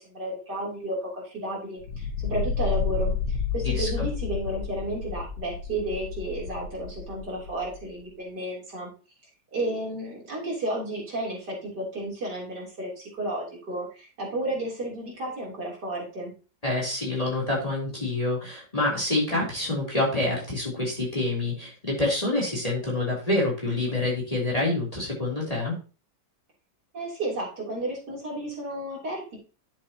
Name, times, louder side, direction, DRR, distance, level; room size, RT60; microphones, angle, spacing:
voice 1, 0.1-1.8 2.2-3.1 3.5-8.9 9.5-12.9 13.2-13.9 14.2-16.3 26.9-29.4, right 1 dB, 55° right, -4 dB, 3.9 m, -32 dB
sound 1, 1.8-7.9, left 5 dB, 80° left, 1.8 m, -31 dB
voice 2, 3.6-4.1 16.6-25.7, left 2 dB, 20° left, -4 dB, 3.4 m, -27 dB
10.5 x 7.5 x 2.9 m, 0.35 s
omnidirectional pair, 2.1 m